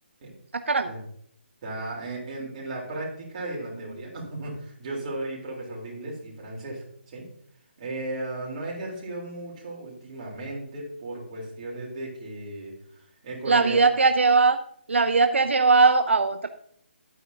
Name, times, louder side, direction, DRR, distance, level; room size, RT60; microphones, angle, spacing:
voice 1, 0.5-0.9 13.5-14.6 14.9-16.5, right 4 dB, 85° right, 8 dB, 0.6 m, -20 dB
voice 2, 1.6-7.3 7.8-13.8, right 2 dB, 35° right, -3 dB, 3.6 m, -35 dB
11.5 x 9.1 x 2.8 m, 0.66 s
hypercardioid pair, 160°, 6 cm